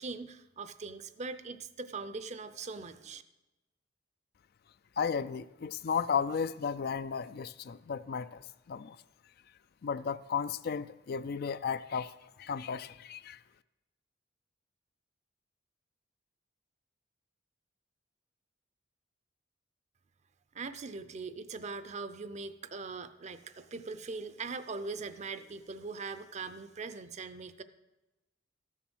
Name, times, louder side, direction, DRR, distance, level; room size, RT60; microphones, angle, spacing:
voice 1, 0.0-3.2 20.5-27.6, right 4 dB, 35° right, 0.6 m, -41 dB
voice 2, 5.0-9.0 9.8-13.4, left 6 dB, 55° left, 0.4 m, -34 dB
13.5 x 7.2 x 6.2 m
head